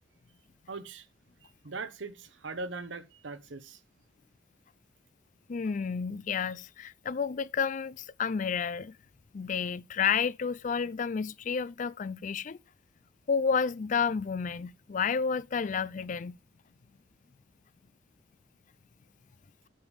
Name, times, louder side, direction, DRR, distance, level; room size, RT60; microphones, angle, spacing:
voice 1, 0.7-1.0 1.4-3.8, right 3 dB, 80° right, 1.0 m, -40 dB
voice 2, 5.5-8.9 9.3-12.6 13.3-16.3, left 6 dB, 45° left, 0.4 m, -30 dB
7.8 x 7.1 x 5.2 m
head